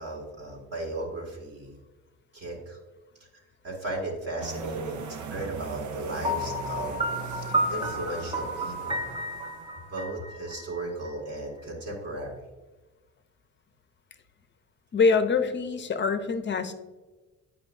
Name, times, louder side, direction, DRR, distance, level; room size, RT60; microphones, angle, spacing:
voice 1, 0.0-1.8 2.3-2.8 3.3-9.1 9.9-12.5, right 2 dB, 50° right, -2 dB, 2.2 m, -36 dB
sound 1, 4.4-9.9, right 5 dB, 75° right, 0.7 m, -39 dB
Piano, 6.2-11.1, equal, 15° right, 1.0 m, -31 dB
voice 2, 14.9-16.7, left 4 dB, 40° left, 8 dB, 0.7 m, -24 dB
8.7 x 5.6 x 2.6 m, 1.2 s
cardioid pair, 90°, 30 cm